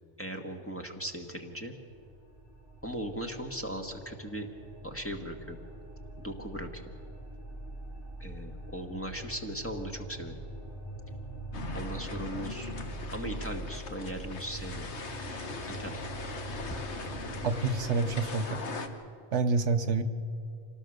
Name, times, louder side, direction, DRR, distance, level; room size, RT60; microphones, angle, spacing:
voice 1, 0.2-1.7 2.8-4.5 4.8-5.6 6.2-6.8 8.2-10.3 11.7-12.7 13.1-14.9 15.7-16.0 16.7-16.8, equal, 10° left, 1 dB, 1.6 m, -38 dB
sound 1, 1.6-17.9, right 1 dB, 55° left, 4.0 m, -43 dB
sound 2, 11.5-18.9, left 4 dB, 70° left, 1.6 m, -40 dB
voice 2, 17.4-18.6 19.3-20.0, right 4 dB, 80° right, 7 dB, 1.3 m, -27 dB
26.5 x 19.0 x 6.6 m, 2.5 s
omnidirectional pair, 1.2 m